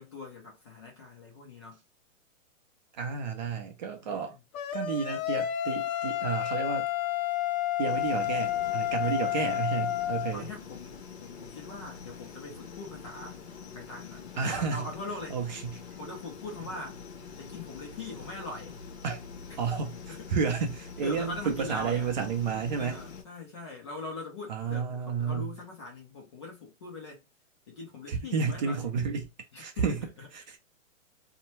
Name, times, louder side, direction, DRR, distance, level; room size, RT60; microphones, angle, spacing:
voice 1, 0.0-1.8 4.0-4.4 9.0-9.4 10.3-13.4 13.7-15.4 16.0-16.9 17.4-18.8 19.5-19.6 20.1-20.3 20.6-20.7 21.0-22.1 22.8-27.3 27.7-28.8 29.5-30.3, left 3 dB, 20° left, 0.4 m, -42 dB
voice 2, 2.9-4.4 4.7-6.9 7.8-10.5 14.3-14.9 15.3-15.8 19.0-19.2 19.6-23.0 24.5-25.5 28.1-29.3 29.6-30.0 30.3-30.6, right 6 dB, 35° right, 0.5 m, -31 dB
sound 1, 4.5-10.3, left 12 dB, 90° left, 0.6 m, -30 dB
sound 2, 7.8-23.2, left 5 dB, 50° left, 0.9 m, -45 dB
2.7 x 2.1 x 2.9 m
hypercardioid pair, 145°, 40 cm